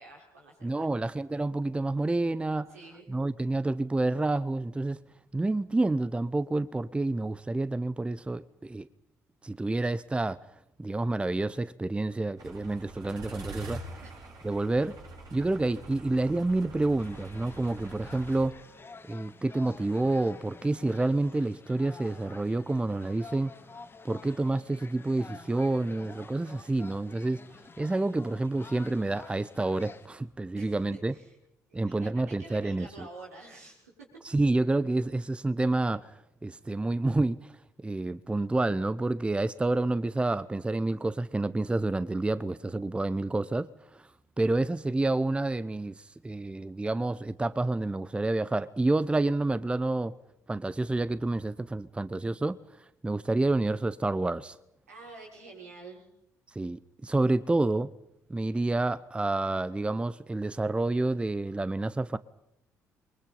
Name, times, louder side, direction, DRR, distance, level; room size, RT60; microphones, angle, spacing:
voice 1, 0.0-0.9 2.7-3.2 14.0-14.3 30.5-31.3 31.7-34.1 54.9-56.0, right 3 dB, 80° right, 6.0 m, -48 dB
voice 2, 0.6-2.7 3.1-5.0 5.3-8.9 9.4-10.4 10.8-13.8 14.4-15.0 15.3-18.6 19.1-23.5 24.0-27.4 27.8-31.1 31.7-33.1 34.2-36.1 36.4-37.5 37.8-44.1 44.4-50.1 50.5-52.6 53.0-54.6 56.5-57.9 58.3-62.2, right 2 dB, 15° right, 0.8 m, -29 dB
sound 1, 12.4-18.5, right 2 dB, 55° right, 6.4 m, -44 dB
sound 2, 17.0-30.1, left 4 dB, 25° left, 2.1 m, -50 dB
28.5 x 23.5 x 5.5 m
figure-of-eight pair, 50°, 8 cm